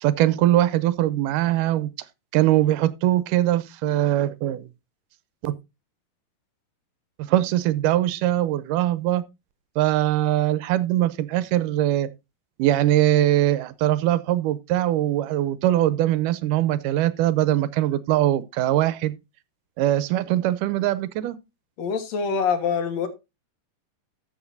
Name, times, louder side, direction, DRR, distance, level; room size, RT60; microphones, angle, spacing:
voice 1, 0.0-1.9 2.3-4.7 5.4-5.6 7.2-9.2 9.8-12.1 12.6-19.2 19.8-21.4, right 14 dB, 85° right, 2.2 m, -22 dB
voice 2, 21.8-23.1, left 6 dB, 65° left, 2.3 m, -25 dB
13.0 x 7.9 x 2.6 m
omnidirectional pair, 3.7 m